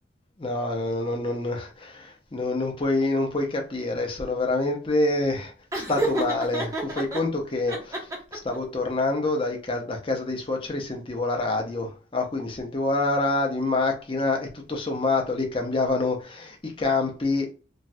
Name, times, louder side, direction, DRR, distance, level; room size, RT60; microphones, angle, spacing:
voice 1, 0.4-8.0 8.3-17.5, left 2 dB, 30° left, 0.6 m, -27 dB
Laughter, 5.7-7.2 7.7-8.6, right 2 dB, 20° right, 0.6 m, -29 dB
3.1 x 2.2 x 2.6 m
head